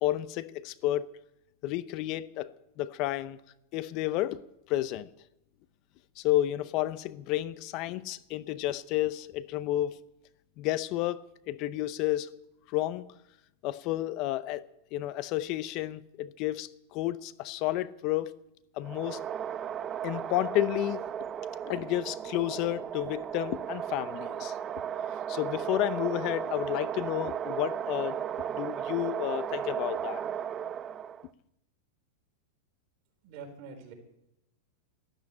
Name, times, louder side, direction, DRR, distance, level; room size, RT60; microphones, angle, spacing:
voice 1, 0.0-1.1 1.6-2.5 2.8-3.4 3.7-4.4 4.7-5.1 6.2-10.0 10.6-12.3 12.7-13.1 13.6-14.6 14.9-18.3 18.8-19.2 20.0-21.0 21.6-24.6 25.3-28.2 28.5-30.2, left 14 dB, 45° left, 0.7 m, -31 dB
sound 1, 18.8-31.3, right 9 dB, 25° right, 0.6 m, -35 dB
voice 2, 33.2-33.9, right 5 dB, 50° right, 4.7 m, -45 dB
13.0 x 13.0 x 8.7 m
supercardioid pair, 135°, 0 cm